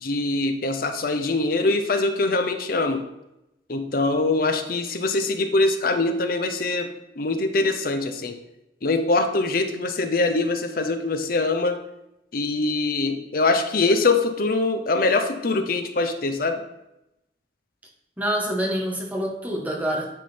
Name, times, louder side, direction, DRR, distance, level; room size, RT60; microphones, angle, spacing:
voice 1, 0.0-3.0 3.7-6.9 7.2-8.4 8.8-11.8 12.3-16.6, left 3 dB, 50° left, 7 dB, 0.7 m, -23 dB
voice 2, 18.2-20.1, equal, 10° right, -2 dB, 1.1 m, -26 dB
9.1 x 3.8 x 4.2 m, 0.88 s
head